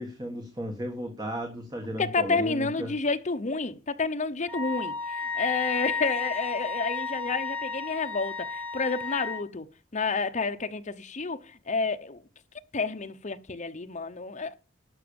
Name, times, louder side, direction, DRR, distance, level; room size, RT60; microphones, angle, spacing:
voice 1, 0.0-3.0, equal, 20° right, 1.6 m, -35 dB
voice 2, 2.0-9.7 9.9-12.2 12.7-14.5, left 4 dB, 35° left, 0.9 m, -30 dB
Wind instrument woodwind instrument, 4.5-9.4, left 4 dB, 10° left, 1.5 m, -32 dB
12.0 x 6.3 x 7.0 m
head